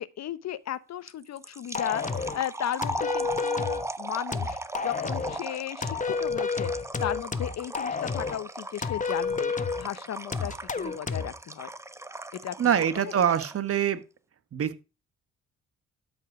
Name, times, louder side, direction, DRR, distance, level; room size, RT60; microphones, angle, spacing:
voice 1, 0.0-6.7 7.0-11.7 12.4-13.1, left 11 dB, 60° left, 1.0 m, -35 dB
sound 1, 1.1-13.7, right 2 dB, 10° right, 0.8 m, -38 dB
sound 2, 1.7-2.4 2.8-3.9 4.3-5.4 5.8-8.4 8.8-9.9 10.3-11.3, left 5 dB, 25° left, 1.2 m, -30 dB
voice 2, 12.6-14.0 14.5-14.8, right 9 dB, 50° right, 1.4 m, -24 dB
12.5 x 5.4 x 6.0 m
cardioid pair, 90°, 30 cm